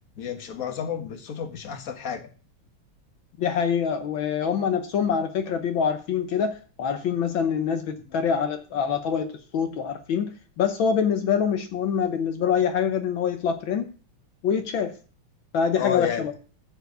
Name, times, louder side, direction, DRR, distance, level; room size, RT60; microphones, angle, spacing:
voice 1, 0.2-2.3 15.8-16.3, left 8 dB, 45° left, 6 dB, 1.8 m, -31 dB
voice 2, 3.4-10.3 10.6-13.9 14.4-14.9 15.5-16.3, left 7 dB, 75° left, 7 dB, 1.7 m, -25 dB
13.0 x 4.7 x 8.0 m, 0.39 s
omnidirectional pair, 2.2 m